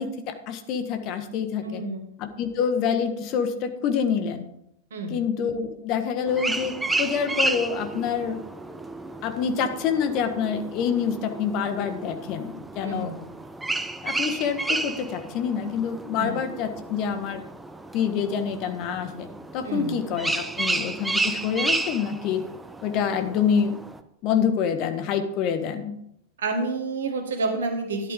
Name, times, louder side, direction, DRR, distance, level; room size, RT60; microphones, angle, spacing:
voice 1, 0.0-1.8 2.2-4.4 5.1-8.4 9.2-13.1 14.0-17.4 17.9-19.3 19.5-22.4 22.8-23.8 24.2-25.9, left 7 dB, 40° left, 8 dB, 1.6 m, -26 dB
voice 2, 1.6-2.0 4.9-5.2 12.8-13.2 16.2-16.4 19.6-20.0 26.4-28.1, right 3 dB, 65° right, 5 dB, 2.1 m, -29 dB
sound 1, 6.3-24.0, right 2 dB, 10° right, 0.8 m, -32 dB
12.5 x 11.0 x 3.8 m, 0.78 s
figure-of-eight pair, 90°, 0 cm